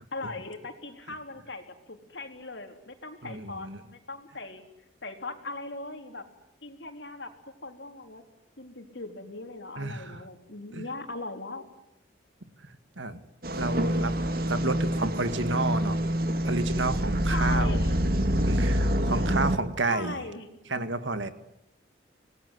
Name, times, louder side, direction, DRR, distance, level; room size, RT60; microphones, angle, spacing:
voice 1, 0.1-4.6 5.0-6.2 6.6-7.3 7.6-8.2 8.6-11.6 17.3-17.9 19.9-20.5, left 3 dB, 70° left, 5 dB, 3.9 m, -39 dB
voice 2, 3.2-3.8 9.8-10.2 10.7-10.8 12.6-13.2 13.6-14.2 14.5-16.0 16.4-17.9 18.5-20.2 20.7-21.3, right 3 dB, 80° right, 11 dB, 2.1 m, -31 dB
sound 1, 13.4-19.6, equal, 50° right, 2.0 m, -26 dB
26.5 x 19.5 x 9.8 m, 0.84 s
head